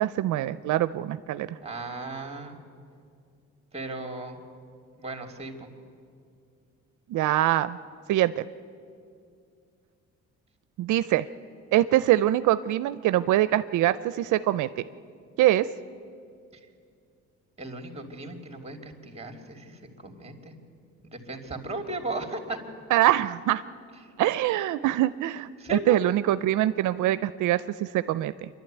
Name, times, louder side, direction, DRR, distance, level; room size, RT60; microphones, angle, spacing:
voice 1, 0.0-1.6 7.1-7.8 8.1-8.4 10.8-11.3 11.7-14.7 15.4-15.7 22.9-23.6 24.2-28.5, right 14 dB, 80° right, 13 dB, 0.5 m, -24 dB
voice 2, 1.6-2.6 3.7-4.4 4.9-5.7 17.6-20.5 21.0-22.6 24.0-24.1 25.6-26.1, right 2 dB, 20° right, 4 dB, 2.8 m, -36 dB
26.5 x 12.0 x 9.0 m, 2.3 s
cardioid pair, 90°, 30 cm